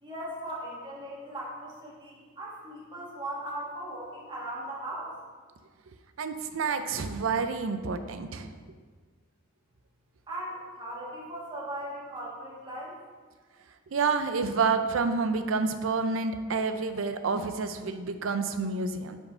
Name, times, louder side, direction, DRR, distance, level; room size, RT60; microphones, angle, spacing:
voice 1, 0.0-5.1 10.3-12.9, right 1 dB, 25° right, -5 dB, 1.5 m, -38 dB
voice 2, 6.2-8.5 13.9-19.2, right 4 dB, 75° right, 9 dB, 0.5 m, -29 dB
5.4 x 4.6 x 5.6 m, 1.5 s
head